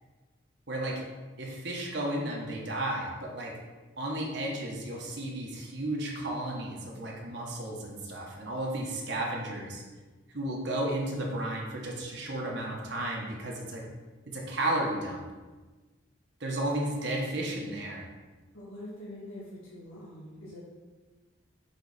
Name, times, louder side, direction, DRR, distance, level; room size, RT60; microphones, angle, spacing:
voice 1, 1.4-3.5 4.0-9.8 10.3-13.8 14.3-15.2 16.4-18.0, right 1 dB, 55° right, -2 dB, 1.1 m, -33 dB
voice 2, 18.5-20.6, left 1 dB, 85° left, -10 dB, 1.9 m, -44 dB
6.9 x 4.0 x 4.1 m, 1.3 s
head